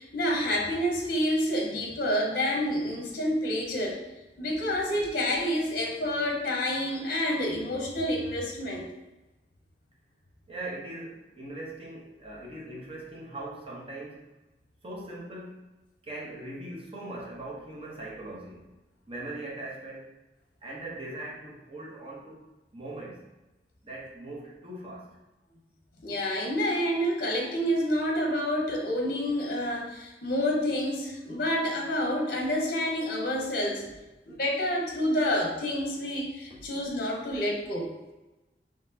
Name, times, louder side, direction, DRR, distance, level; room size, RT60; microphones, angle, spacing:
voice 1, 0.0-4.0 4.4-8.9 26.0-33.8 34.3-37.9, equal, 55° left, 0 dB, 0.8 m, -28 dB
voice 2, 10.5-14.3 14.8-15.6 16.0-18.6 19.1-20.1 20.6-22.4 22.7-23.2 23.8-25.1, right 2 dB, 30° right, -4 dB, 1.0 m, -40 dB
4.1 x 3.1 x 2.8 m, 1.1 s
head